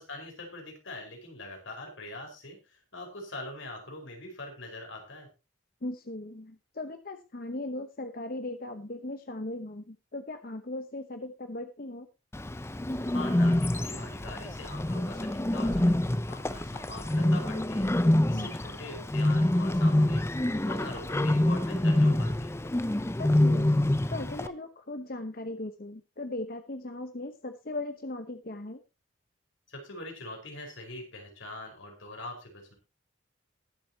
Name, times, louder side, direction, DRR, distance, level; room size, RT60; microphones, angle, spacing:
voice 1, 0.0-5.3 13.1-17.9 18.3-20.2 20.6-22.5 29.7-32.7, left 2 dB, 85° left, 1 dB, 4.9 m, -43 dB
voice 2, 5.8-12.1 18.3-18.6 23.2-23.7 24.1-28.8, left 2 dB, 50° left, 8 dB, 1.0 m, -38 dB
Bird, 12.3-24.5, left 1 dB, 15° left, 0.5 m, -26 dB
20.5 x 7.7 x 2.9 m, 0.28 s
head